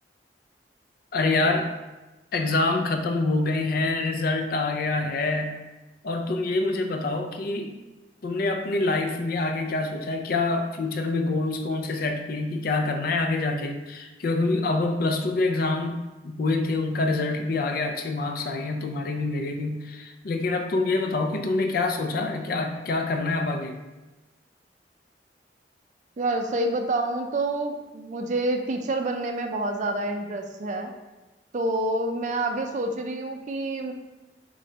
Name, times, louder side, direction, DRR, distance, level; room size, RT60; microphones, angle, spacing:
voice 1, 1.1-1.7 2.3-5.6 6.0-7.7 8.2-23.8, left 3 dB, 55° left, 5 dB, 0.5 m, -26 dB
voice 2, 26.2-30.9 31.5-33.9, right 2 dB, 45° right, 4 dB, 0.4 m, -27 dB
4.1 x 3.7 x 3.3 m, 1.1 s
head